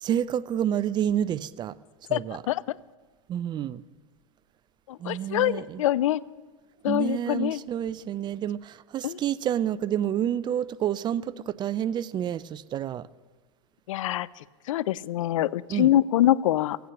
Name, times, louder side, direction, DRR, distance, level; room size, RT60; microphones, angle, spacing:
voice 1, 0.0-1.8 2.1-2.4 3.3-3.8 5.0-5.8 6.9-13.1 15.7-15.9, right 10 dB, 30° right, 19 dB, 0.4 m, -29 dB
voice 2, 4.9-6.2 6.8-7.6 9.0-9.2 13.9-14.3 14.7-16.8, left 13 dB, 90° left, 22 dB, 0.4 m, -24 dB
15.5 x 9.4 x 7.0 m, 1.4 s
supercardioid pair, 120°, 16 cm